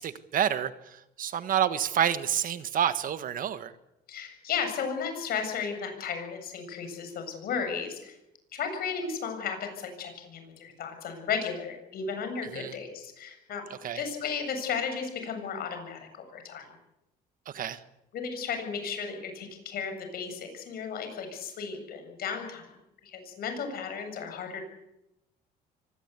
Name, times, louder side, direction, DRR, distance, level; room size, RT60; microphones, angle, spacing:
voice 1, 0.0-3.7 12.5-12.8 13.8-14.0 17.5-17.8, right 9 dB, 55° right, 12 dB, 1.5 m, -29 dB
voice 2, 4.1-8.1 8.5-13.6 14.0-16.7 18.1-22.7 23.0-24.6, left 6 dB, 65° left, 6 dB, 7.4 m, -34 dB
24.5 x 18.5 x 8.3 m, 0.86 s
cardioid pair, 110°, 17 cm